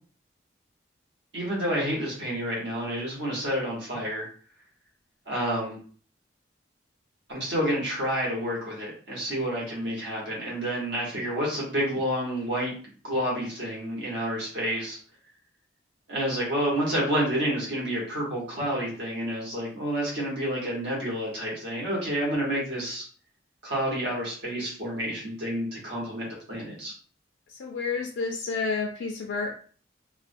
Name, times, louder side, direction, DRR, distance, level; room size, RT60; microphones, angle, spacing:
voice 1, 1.3-4.3 5.3-5.8 7.3-15.0 16.1-23.0 23.6-26.9, equal, 65° right, -4 dB, 1.0 m, -29 dB
voice 2, 27.5-29.5, left 4 dB, 80° left, 1 dB, 0.3 m, -30 dB
2.3 x 2.2 x 2.5 m, 0.43 s
head